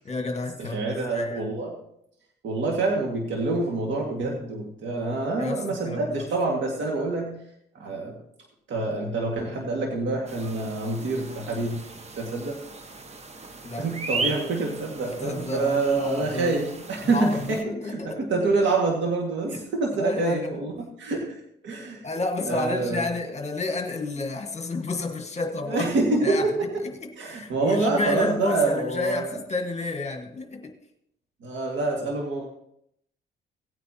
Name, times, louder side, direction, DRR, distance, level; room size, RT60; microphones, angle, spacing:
voice 1, 0.0-1.4 5.4-6.3 13.6-13.9 15.2-16.5 17.0-18.3 19.5-19.6 19.9-20.6 22.0-25.9 26.2-26.5 26.8-30.8, left 3 dB, 35° left, 3 dB, 1.7 m, -31 dB
voice 2, 0.6-1.8 2.4-7.3 7.7-8.2 8.7-11.8 12.1-12.6 13.8-17.6 17.8-22.0 22.5-23.1 25.7-26.5 27.2-29.3 31.4-32.5, right 3 dB, 70° right, 0 dB, 2.0 m, -26 dB
sound 1, 10.3-17.6, right 3 dB, 35° right, 1.2 m, -37 dB
17.5 x 9.0 x 2.9 m, 0.74 s
cardioid pair, 90°, 20 cm